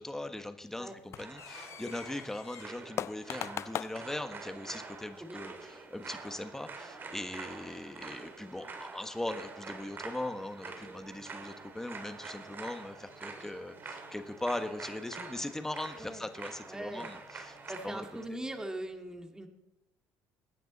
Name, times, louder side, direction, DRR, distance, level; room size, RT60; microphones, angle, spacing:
voice 1, 0.0-17.6 17.8-18.1, left 1 dB, 5° left, 8 dB, 1.3 m, -40 dB
sound 1, 0.6-18.6, left 10 dB, 45° left, 0.4 m, -48 dB
sound 2, 1.2-18.2, right 4 dB, 35° right, 2.3 m, -47 dB
Bowed string instrument, 11.1-15.9, right 4 dB, 60° right, 3.1 m, -64 dB
voice 2, 16.6-17.1 17.7-19.5, right 1 dB, 10° right, 5 dB, 2.0 m, -41 dB
23.0 x 9.3 x 4.1 m, 0.90 s
cardioid pair, 115°, 6 cm